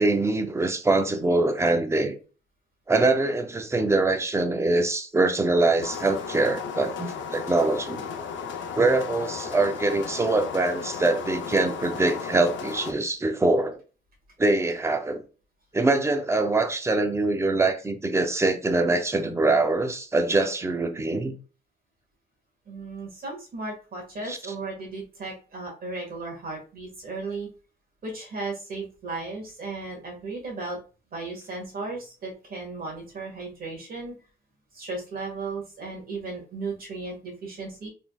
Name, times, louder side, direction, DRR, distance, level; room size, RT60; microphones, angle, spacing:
voice 1, 0.0-2.1 2.9-8.0 8.8-13.8 14.4-15.2 15.7-21.3 24.3-24.4, right 2 dB, 15° right, 0.4 m, -23 dB
sound 1, 5.8-12.9, left 6 dB, 85° left, 0.6 m, -35 dB
voice 2, 22.7-27.5 28.0-30.8 31.1-34.1 34.7-37.9, right 3 dB, 50° right, 1.7 m, -35 dB
4.0 x 3.5 x 2.3 m
wide cardioid pair, 155°, 19 cm